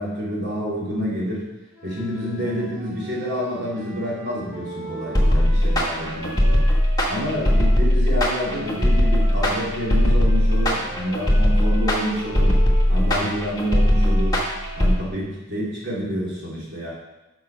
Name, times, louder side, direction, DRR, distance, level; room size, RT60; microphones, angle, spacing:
voice 1, 0.0-1.5 1.8-6.7 7.1-12.6 12.9-14.4 14.8-16.9, equal, 50° right, -6 dB, 3.0 m, -28 dB
sound 1, 1.7-7.8 8.4-15.0, right 1 dB, 10° right, 2.5 m, -39 dB
sound 2, 5.1-15.0, equal, 15° left, 1.6 m, -18 dB
7.7 x 6.1 x 5.3 m, 1.0 s
head